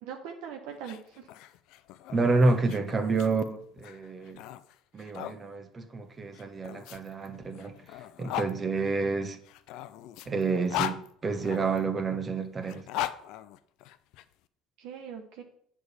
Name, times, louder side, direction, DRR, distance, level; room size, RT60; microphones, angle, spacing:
voice 1, 0.0-1.2 14.8-15.4, right 7 dB, 65° right, 1.0 m, -41 dB
sound 1, 0.7-5.4 6.3-8.5 9.4-11.8 12.6-14.2, left 13 dB, 65° left, 0.5 m, -38 dB
voice 2, 2.1-4.4 4.9-7.7 8.2-9.4 10.3-12.8, right 3 dB, 30° right, 1.1 m, -29 dB
7.9 x 4.8 x 6.9 m
hypercardioid pair, 65°, 0 cm